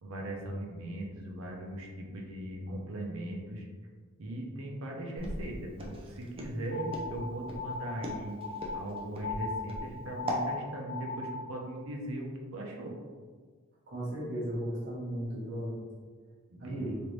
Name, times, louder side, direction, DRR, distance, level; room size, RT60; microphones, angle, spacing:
voice 1, 0.0-3.7 4.2-8.4 8.7-13.0 16.5-17.0, right 1 dB, 80° right, 0 dB, 0.6 m, -39 dB
Walk footsteps, 5.2-10.5, equal, 25° right, 0.5 m, -39 dB
sound 1, 6.7-11.6, left 4 dB, 75° left, 1.1 m, -39 dB
voice 2, 13.9-15.8 16.6-17.0, right 1 dB, 55° right, -8 dB, 1.0 m, -35 dB
3.2 x 2.6 x 3.0 m, 1.5 s
head